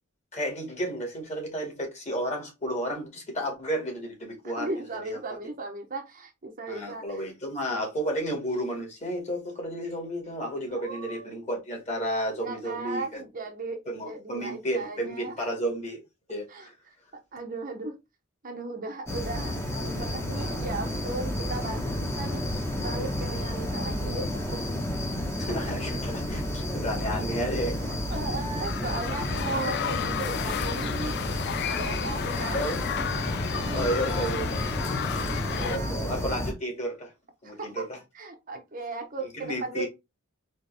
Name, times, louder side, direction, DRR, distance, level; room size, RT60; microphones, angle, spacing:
voice 1, 0.3-4.7 5.0-5.2 6.7-13.2 13.9-16.0 16.3-16.7 25.4-28.3 28.8-29.2 32.5-32.8 33.7-34.6 35.5-37.1 37.4-38.0 39.3-39.9, equal, 35° left, 2.0 m, -32 dB
voice 2, 4.4-7.0 10.7-11.3 12.4-15.3 16.5-16.7 17.3-18.0 18.4-24.6 28.1-31.2 31.7-32.8 33.5-33.9 35.1-36.0 37.4-37.8 38.1-39.9, right 3 dB, 40° right, 0.8 m, -36 dB
sound 1, 19.1-36.5, left 1 dB, 15° left, 1.0 m, -31 dB
sound 2, 28.6-35.8, left 8 dB, 55° left, 0.4 m, -32 dB
4.3 x 3.1 x 3.2 m
head